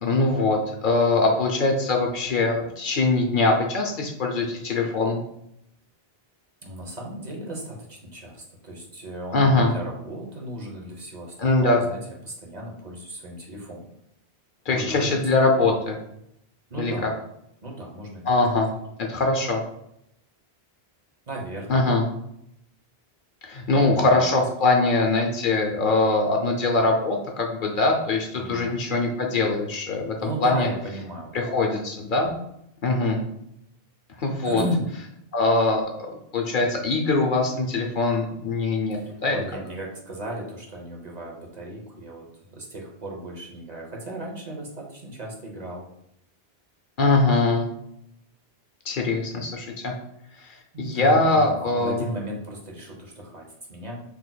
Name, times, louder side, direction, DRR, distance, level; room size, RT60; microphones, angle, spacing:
voice 1, 0.0-5.2 9.3-9.7 11.4-11.8 14.7-16.0 16.8-17.1 18.3-18.7 19.0-19.6 21.7-22.0 23.4-30.1 30.4-30.7 31.3-32.3 32.8-33.2 34.2-34.6 35.3-36.1 36.3-39.4 47.0-47.7 48.9-49.9 50.5-52.1, left 3 dB, 60° left, 2 dB, 0.7 m, -22 dB
voice 2, 6.6-12.0 12.2-13.8 14.7-15.2 16.7-17.1 17.6-18.2 21.3-21.8 23.9-24.3 28.3-28.7 30.2-31.5 34.5-34.9 38.9-42.3 42.5-45.9 50.7-54.0, right 1 dB, 45° right, -1 dB, 0.8 m, -35 dB
5.9 x 2.8 x 2.2 m, 0.77 s
omnidirectional pair, 1.0 m